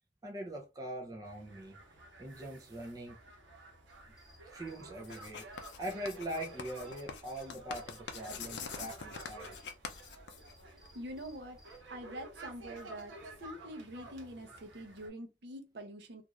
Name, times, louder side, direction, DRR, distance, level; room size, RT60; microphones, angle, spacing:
voice 1, 0.2-1.8 2.2-3.2 4.4-5.5 5.8-9.6, right 1 dB, 20° right, 0.5 m, -42 dB
sound 1, 1.2-15.1, right 2 dB, 80° right, 0.9 m, -52 dB
sound 2, 3.9-11.8, left 1 dB, ahead, 0.8 m, -62 dB
Writing, 5.0-10.9, left 6 dB, 65° left, 0.5 m, -45 dB
voice 2, 10.7-16.2, equal, 60° right, 0.6 m, -45 dB
2.5 x 2.4 x 3.0 m
head